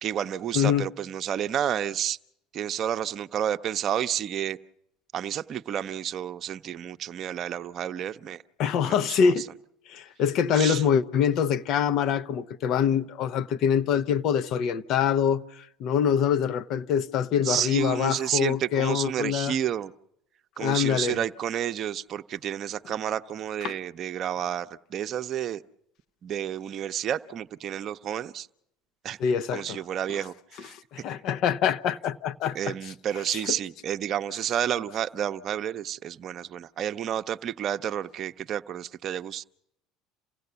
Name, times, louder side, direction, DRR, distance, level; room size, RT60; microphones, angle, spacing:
voice 1, 0.0-2.2 2.5-4.6 5.1-8.4 8.8-9.3 10.5-10.8 17.4-19.9 20.6-25.6 26.2-28.5 29.0-29.2 29.5-30.7 32.5-39.4, right 10 dB, 50° right, 0.7 m, -30 dB
voice 2, 0.5-0.9 8.6-9.4 9.9-19.6 20.6-21.2 23.6-23.7 29.2-29.6 30.7-32.9 33.3-33.4, left 8 dB, 60° left, 0.8 m, -25 dB
28.5 x 16.5 x 6.9 m
hypercardioid pair, 70°, 0 cm